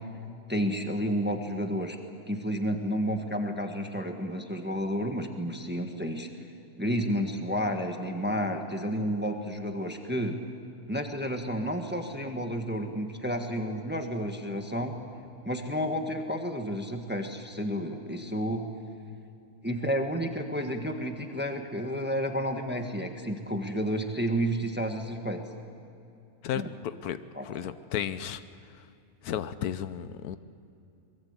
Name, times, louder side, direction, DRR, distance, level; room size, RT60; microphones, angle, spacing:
voice 1, 0.5-2.0 2.3-6.3 6.8-10.4 10.9-14.9 15.4-18.7 19.6-25.4 26.5-26.7 27.3-27.5, equal, 5° right, 4 dB, 1.4 m, -31 dB
voice 2, 26.4-27.2 27.4-28.4 29.2-30.4, left 10 dB, 90° left, 13 dB, 1.3 m, -33 dB
23.5 x 22.0 x 8.2 m, 2.7 s
omnidirectional pair, 1.6 m